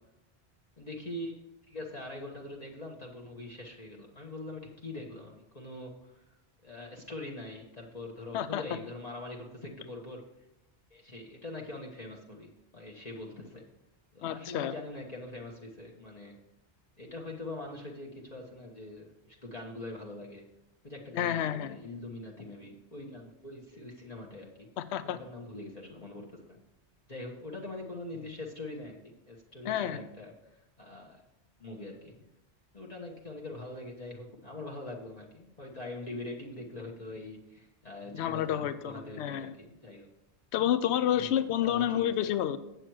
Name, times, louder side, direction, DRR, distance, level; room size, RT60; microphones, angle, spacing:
voice 1, 0.8-1.4 1.7-6.3 6.6-10.2 10.9-13.6 14.1-16.4 17.0-20.4 20.8-24.7 25.0-26.6 27.1-31.2 31.6-32.2 32.7-40.1 41.1-41.3 41.6-42.3, left 2 dB, 35° left, -2 dB, 1.2 m, -43 dB
voice 2, 14.2-14.7 21.1-21.8 24.8-25.2 29.6-30.0 38.1-39.5 40.5-42.6, left 10 dB, 75° left, 13 dB, 0.9 m, -29 dB
8.0 x 7.8 x 4.6 m, 0.89 s
omnidirectional pair, 1.1 m